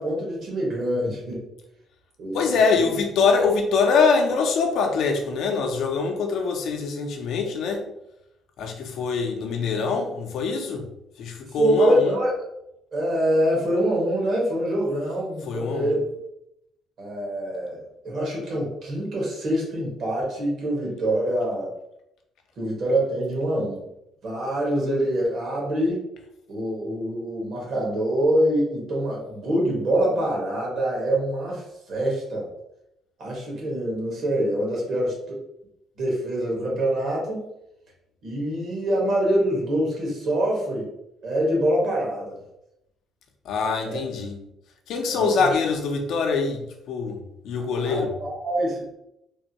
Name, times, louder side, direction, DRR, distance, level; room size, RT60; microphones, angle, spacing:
voice 1, 0.0-1.4 2.2-2.9 11.6-12.3 12.9-16.0 17.0-17.8 18.0-21.7 22.6-23.9 24.2-26.0 26.5-31.6 31.9-32.5 33.2-35.4 36.0-37.4 38.2-40.9 41.2-42.3 43.8-44.0 45.1-45.5 47.8-48.8, right 1 dB, 60° right, -3 dB, 1.4 m, -25 dB
voice 2, 2.3-7.8 8.6-10.9 11.2-12.2 15.4-15.9 43.5-44.4 44.9-48.1, left 5 dB, 75° left, 3 dB, 0.6 m, -24 dB
3.4 x 2.2 x 2.8 m, 0.83 s
cardioid pair, 90°, 0 cm